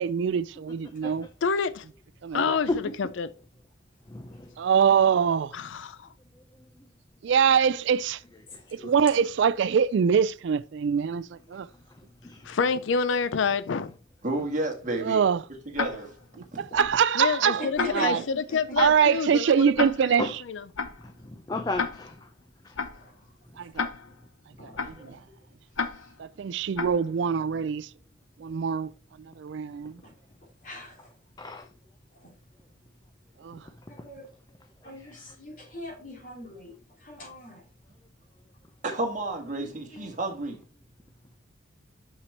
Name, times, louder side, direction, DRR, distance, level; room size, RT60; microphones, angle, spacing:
voice 1, 0.0-1.3 2.2-2.6 4.6-5.5 7.2-8.2 8.7-11.7 15.0-15.4 16.6-18.2 18.8-20.3 23.6-23.9 25.0-25.2 26.2-27.9 28.4-28.9 29.4-29.9 33.4-33.6, right 7 dB, 65° right, 0.3 m, -24 dB
voice 2, 1.4-1.8 2.3-2.7 3.0-3.3 5.5-5.9 12.4-13.9 17.2-20.6, left 5 dB, 70° left, 0.5 m, -28 dB
voice 3, 4.1-4.5 8.8-8.9 12.2-12.5 20.2-20.3 21.0-22.2 31.4-31.7 35.0-35.4, left 2 dB, 20° left, 0.5 m, -33 dB
voice 4, 14.2-15.2 15.7-16.1 16.5-16.6 38.8-40.6, right 2 dB, 40° right, 1.7 m, -31 dB
Tick-tock, 15.7-16.2 16.8-17.1 17.8-18.2 18.8-19.1 19.8-20.2 20.8-21.1 21.8-22.2 22.8-23.1 23.8-24.2 24.8-25.1 25.7-26.2 26.7-27.1, left 5 dB, 90° left, 0.9 m, -33 dB
voice 5, 17.8-18.2 18.5-18.6 22.9-23.1 24.6-25.1 30.0-30.1 30.6-31.1 32.2-32.3 33.9-34.3 34.8-36.7 37.0-37.6 39.6-40.1, left 1 dB, 40° left, 3.5 m, -40 dB
6.7 x 5.8 x 4.3 m
head